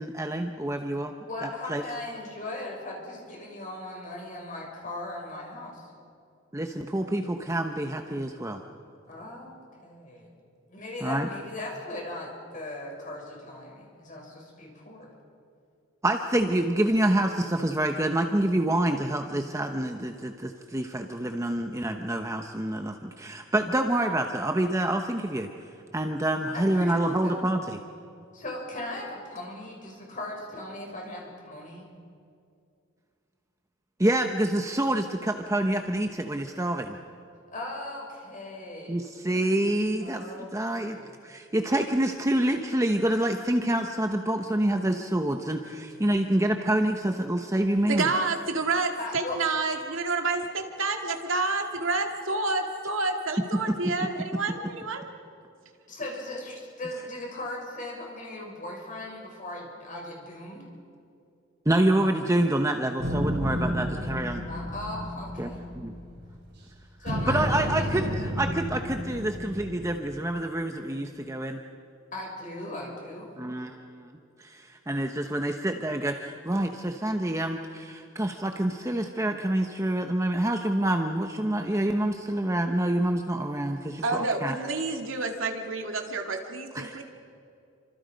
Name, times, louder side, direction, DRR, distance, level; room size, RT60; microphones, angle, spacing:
voice 1, 0.0-1.1 1.7-1.8 6.5-8.6 11.0-11.3 16.0-25.5 25.9-27.8 34.0-37.0 38.9-40.2 40.5-41.0 41.2-48.1 53.5-53.8 61.7-64.4 65.4-65.5 67.3-71.6 73.4-74.1 74.4-84.6 86.7-87.0, right 1 dB, 15° right, 4 dB, 0.9 m, -27 dB
voice 2, 1.3-5.8 9.1-9.5 9.8-10.3 10.7-15.1 26.5-27.3 28.3-31.9 37.5-39.1 40.0-40.5 40.8-41.2 49.0-49.4 55.9-60.6 64.5-65.5 67.0-67.9 72.1-73.3, left 1 dB, 40° left, -1 dB, 6.6 m, -38 dB
voice 3, 47.9-55.1 84.0-87.0, right 3 dB, 75° right, 4 dB, 2.3 m, -29 dB
sound 1, 63.0-66.6 67.1-70.4, equal, 55° right, 4.9 m, -32 dB
29.0 x 26.0 x 5.2 m, 2.4 s
head